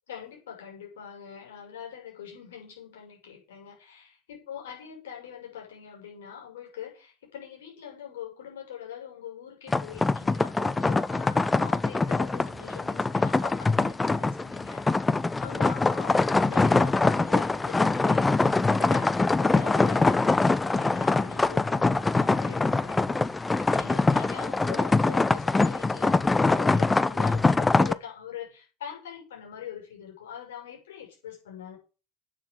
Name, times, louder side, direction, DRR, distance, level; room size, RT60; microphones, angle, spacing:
voice 1, 0.1-15.1 15.4-31.8, left 9 dB, 75° left, 0 dB, 6.7 m, -43 dB
sound 1, 9.7-27.9, left 3 dB, 15° left, 0.8 m, -24 dB
9.1 x 7.3 x 8.2 m, 0.34 s
figure-of-eight pair, 60°, 0 cm